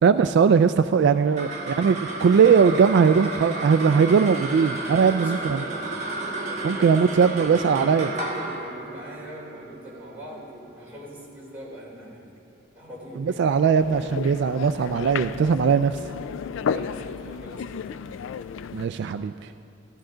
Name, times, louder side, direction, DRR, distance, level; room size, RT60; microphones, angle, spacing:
voice 1, 0.0-5.6 6.6-8.1 13.2-16.0 18.7-19.3, right 6 dB, 60° right, 11 dB, 0.3 m, -20 dB
sound 1, 1.1-11.7, right 2 dB, 40° right, 1.5 m, -33 dB
voice 2, 5.0-7.6 8.0-12.2 12.7-13.4 16.7-18.1, equal, 10° right, -6 dB, 3.5 m, -42 dB
sound 2, 13.8-18.9, left 6 dB, 70° left, 0.3 m, -33 dB
16.5 x 13.0 x 3.9 m, 2.4 s
head